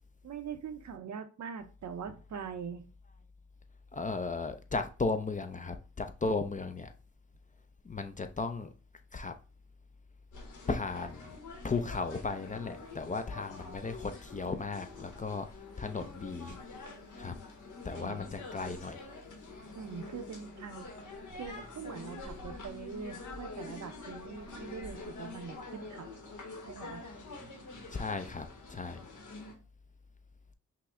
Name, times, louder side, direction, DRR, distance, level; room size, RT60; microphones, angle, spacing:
voice 1, 0.2-2.9 17.9-18.2 19.7-20.9 21.3-26.1 26.7-27.0, right 6 dB, 65° right, 0.7 m, -43 dB
voice 2, 3.9-6.9 7.8-8.7 9.1-9.3 10.7-11.3 11.6-15.5 15.8-16.6 17.2-17.4 17.8-19.0 27.9-29.0, left 3 dB, 25° left, 0.4 m, -35 dB
sound 1, 10.3-29.5, left 3 dB, 75° left, 1.2 m, -46 dB
5.7 x 2.1 x 3.6 m
cardioid pair, 80°, 31 cm